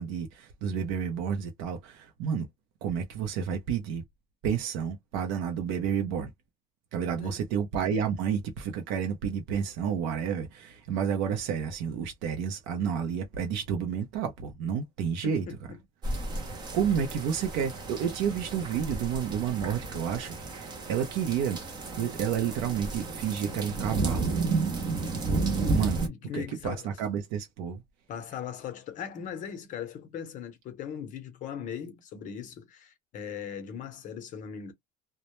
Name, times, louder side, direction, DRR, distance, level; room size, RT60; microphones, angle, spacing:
voice 1, 0.0-2.5 2.8-4.0 4.4-6.3 6.9-15.4 16.7-21.6 22.0-24.3 25.7-26.0 26.3-27.8, right 7 dB, 70° right, 0.6 m, -30 dB
voice 2, 15.2-15.8 26.1-26.9 28.1-34.7, left 8 dB, 40° left, 0.7 m, -39 dB
sound 1, 16.0-26.1, right 3 dB, 20° right, 0.5 m, -32 dB
2.1 x 2.0 x 2.9 m
cardioid pair, 170°, 21 cm